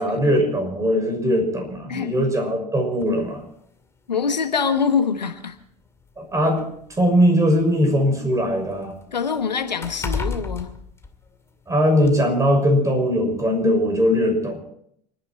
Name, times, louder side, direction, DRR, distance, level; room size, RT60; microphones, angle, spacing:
voice 1, 0.0-3.4 6.2-6.6 7.0-8.9 11.7-14.6, equal, 15° right, 3 dB, 6.2 m, -20 dB
sound 1, 3.0-3.2 4.2-4.3 4.8-4.9 5.9-7.8 8.2-11.6 12.0-12.2, left 4 dB, 15° left, 2.3 m, -33 dB
voice 2, 4.1-5.5 9.1-10.7, left 6 dB, 90° left, 8 dB, 1.5 m, -24 dB
29.5 x 10.5 x 4.4 m, 0.70 s
hypercardioid pair, 90°, 21 cm